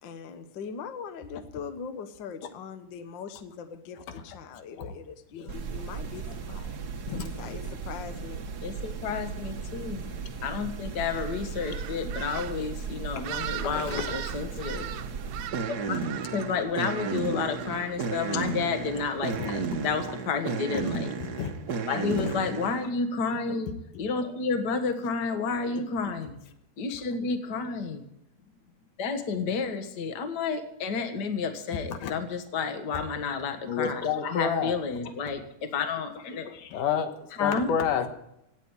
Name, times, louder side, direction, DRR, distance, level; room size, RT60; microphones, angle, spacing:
voice 1, 0.0-6.8 7.1-8.5, left 6 dB, 60° left, 10 dB, 1.2 m, -41 dB
sound 1, 5.5-22.9, right 5 dB, 50° right, 1.2 m, -34 dB
voice 2, 7.1-7.5 13.2-13.3 13.6-14.2 19.4-19.9 20.7-20.9 21.4-21.5 22.1-22.3 31.9-32.1 33.7-34.7 35.2-35.3 36.7-38.1, left 7 dB, 90° left, 8 dB, 2.9 m, -30 dB
voice 3, 8.6-10.0 10.4-14.9 15.9-16.0 16.3-21.1 21.9-23.7 24.0-26.4 26.8-28.0 29.0-36.8 37.4-37.7, left 5 dB, 40° left, 8 dB, 1.7 m, -31 dB
sound 2, 10.9-20.0, right 12 dB, 75° right, 1.9 m, -41 dB
17.5 x 8.4 x 8.3 m, 0.82 s
omnidirectional pair, 3.5 m